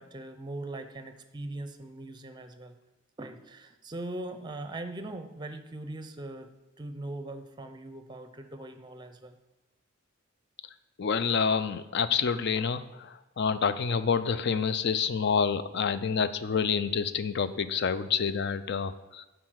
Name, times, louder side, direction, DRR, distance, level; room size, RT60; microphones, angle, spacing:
voice 1, 0.0-2.8 3.2-6.5 6.8-9.4, right 2 dB, 20° right, 8 dB, 0.6 m, -40 dB
voice 2, 11.0-13.1 13.4-19.3, left 6 dB, 55° left, 13 dB, 0.4 m, -28 dB
7.6 x 4.8 x 6.4 m, 1.0 s
head